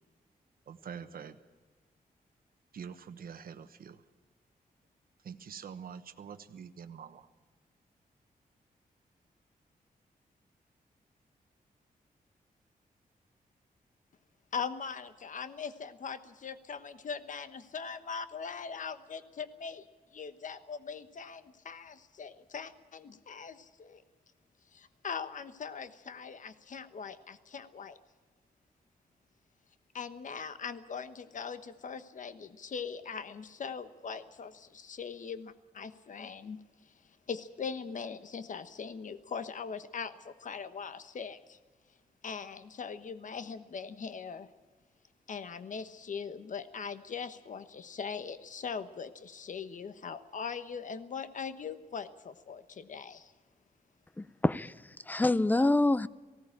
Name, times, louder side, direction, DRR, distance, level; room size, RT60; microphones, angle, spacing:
voice 1, 0.7-1.4 2.7-4.0 5.2-7.3, right 7 dB, 75° right, 8 dB, 1.1 m, -45 dB
voice 2, 14.5-19.9 20.1-24.0 24.7-28.0 29.9-36.9 37.3-41.6 42.2-44.5 45.3-53.3, left 6 dB, 55° left, 12 dB, 1.1 m, -41 dB
voice 3, 54.2-54.7 55.1-56.1, left 2 dB, 10° left, 18 dB, 0.5 m, -26 dB
18.5 x 17.0 x 8.8 m, 1.4 s
wide cardioid pair, 115°, 15 cm